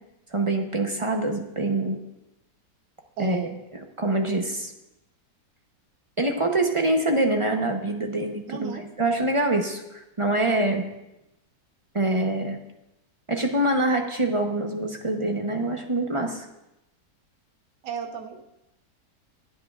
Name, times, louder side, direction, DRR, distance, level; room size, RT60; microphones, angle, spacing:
voice 1, 0.3-2.0 3.2-3.5 4.0-4.7 6.2-10.8 11.9-12.6 13.3-16.5, right 2 dB, 30° right, 3 dB, 0.6 m, -25 dB
voice 2, 3.2-3.6 8.5-8.9 17.8-18.4, right 6 dB, 90° right, 4 dB, 1.7 m, -34 dB
23.0 x 8.5 x 2.4 m, 0.92 s
omnidirectional pair, 1.8 m